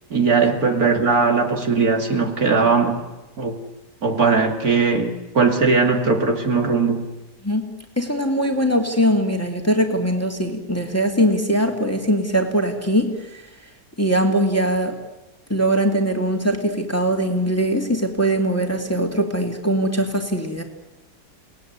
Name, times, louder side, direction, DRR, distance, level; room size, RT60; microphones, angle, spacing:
voice 1, 0.1-3.0 3.4-3.6 4.0-7.1, right 4 dB, 55° right, 3 dB, 2.9 m, -19 dB
voice 2, 8.0-13.4 14.0-14.9 15.5-20.6, equal, 10° left, 3 dB, 2.6 m, -21 dB
30.0 x 19.5 x 9.6 m, 1.1 s
omnidirectional pair, 1.9 m